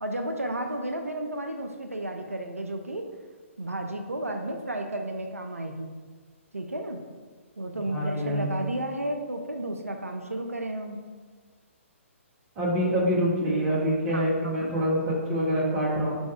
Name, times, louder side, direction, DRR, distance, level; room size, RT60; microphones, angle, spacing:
voice 1, 0.0-3.1 3.6-5.9 6.5-7.0 7.6-11.0 14.1-14.7, right 1 dB, 90° right, 4 dB, 0.3 m, -33 dB
voice 2, 7.8-8.6 12.6-16.2, equal, 20° right, -6 dB, 1.1 m, -26 dB
4.0 x 2.6 x 3.3 m, 1.5 s
figure-of-eight pair, 130°, 7 cm